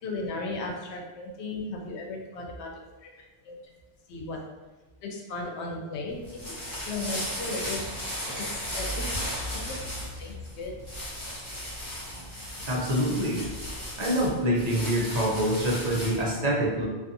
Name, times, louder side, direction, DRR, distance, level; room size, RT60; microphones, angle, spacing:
voice 1, 0.0-2.7 3.0-3.1 3.4-3.6 4.1-4.4 5.0-6.4 6.7-7.8 8.4-9.3 9.5-9.8 10.2-10.7, left 3 dB, 85° left, 0 dB, 0.9 m, -36 dB
sound 1, 6.1-16.3, left 1 dB, 30° left, 1.0 m, -35 dB
voice 2, 12.7-13.4 14.0-16.8, right 1 dB, 45° right, -4 dB, 0.7 m, -26 dB
2.5 x 2.4 x 2.6 m, 1.2 s
omnidirectional pair, 1.1 m